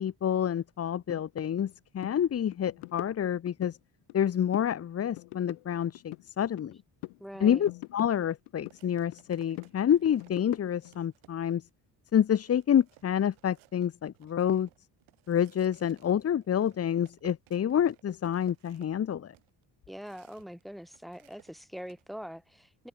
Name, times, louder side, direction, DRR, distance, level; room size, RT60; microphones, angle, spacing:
voice 1, 0.0-3.8 4.1-6.8 7.4-11.6 12.1-14.7 15.3-19.3, left 9 dB, 35° left, 0.6 m, -28 dB
sound 1, 1.1-1.2 1.6-1.7 2.0-2.2 2.5-3.8 4.1-4.7 5.0-6.8 7.0-8.8 9.1-11.0, left 25 dB, 90° left, 0.7 m, -43 dB
voice 2, 7.2-7.6 19.9-22.9, equal, ahead, 1.9 m, -43 dB
sound 2, 7.7-7.9 8.7-11.7 12.1-12.2 12.5-20.6 20.9-22.0, right 20 dB, 90° right, 2.8 m, -60 dB
supercardioid pair, 55°, 47 cm